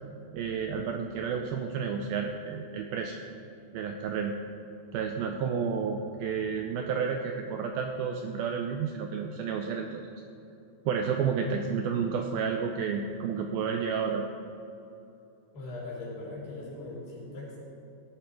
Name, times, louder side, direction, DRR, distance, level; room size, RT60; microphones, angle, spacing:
voice 1, 0.3-3.2 3.7-4.3 4.9-10.0 10.9-14.2, right 6 dB, 85° right, 4 dB, 2.1 m, -31 dB
voice 2, 15.5-17.6, left 2 dB, 65° left, -5 dB, 5.5 m, -40 dB
17.0 x 10.5 x 4.8 m, 2.9 s
omnidirectional pair, 5.0 m